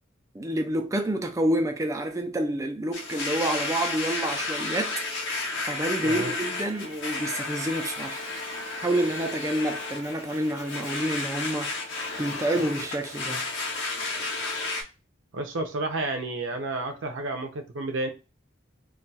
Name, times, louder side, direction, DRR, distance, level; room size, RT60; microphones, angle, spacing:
voice 1, 0.3-5.0 5.6-8.2 8.8-11.7 12.2-13.4, right 1 dB, 15° right, 0.4 m, -28 dB
Domestic sounds home sounds, 2.9-14.8, left 3 dB, 70° left, 0.9 m, -32 dB
voice 2, 15.3-18.1, right 2 dB, 85° right, 0.6 m, -31 dB
2.4 x 2.3 x 4.0 m
head